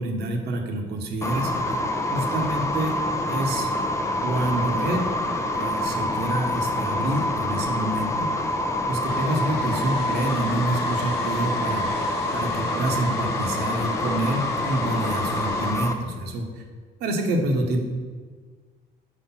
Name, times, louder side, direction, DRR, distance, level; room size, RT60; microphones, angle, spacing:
voice 1, 0.0-1.8 2.1-2.9 3.3-3.7 4.2-5.1 5.5-8.3 8.9-11.9 12.3-16.6 17.0-17.8, right 1 dB, 75° right, 3 dB, 1.0 m, -27 dB
sound 1, 1.2-15.9, left 1 dB, 15° left, 0.6 m, -26 dB
Domestic sounds home sounds, 9.1-15.7, left 6 dB, 70° left, 0.6 m, -37 dB
4.9 x 4.3 x 5.6 m, 1.5 s
cardioid pair, 110°, 17 cm